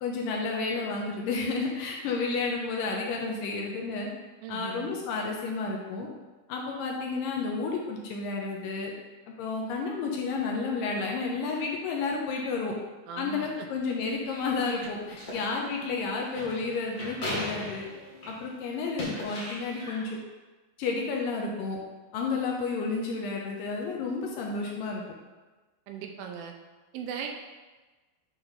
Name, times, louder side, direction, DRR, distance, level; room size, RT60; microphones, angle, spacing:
voice 1, 0.0-4.1 4.5-6.1 6.5-8.9 9.3-12.7 13.2-17.9 18.3-20.2 20.8-21.8 22.1-25.0, left 4 dB, 80° left, 0 dB, 2.2 m, -31 dB
voice 2, 4.4-4.9 13.1-13.7 25.9-26.6 26.9-27.3, right 7 dB, 80° right, 3 dB, 2.3 m, -38 dB
sound 1, 14.1-18.5 18.8-20.1, left 1 dB, 45° left, 1.2 m, -38 dB
8.1 x 3.0 x 5.2 m, 1.2 s
omnidirectional pair, 4.3 m